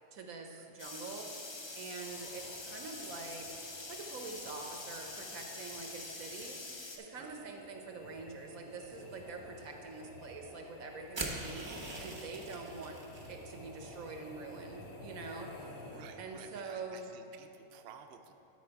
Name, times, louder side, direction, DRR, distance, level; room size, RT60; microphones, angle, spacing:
voice 1, 0.1-1.3 1.7-3.5 3.9-6.6 7.0-13.0 13.3-15.9 16.2-17.1, right 4 dB, 90° right, 3 dB, 1.3 m, -45 dB
sound 1, 0.8-7.0, left 2 dB, 40° left, 0.3 m, -45 dB
sound 2, 2.0-16.5, left 1 dB, 85° left, 1.6 m, -52 dB
sound 3, 11.1-13.3, right 2 dB, 25° right, 0.6 m, -42 dB
voice 2, 15.9-18.3, right 7 dB, 65° right, 5 dB, 0.7 m, -53 dB
11.5 x 4.7 x 4.6 m, 2.8 s
omnidirectional pair, 1.4 m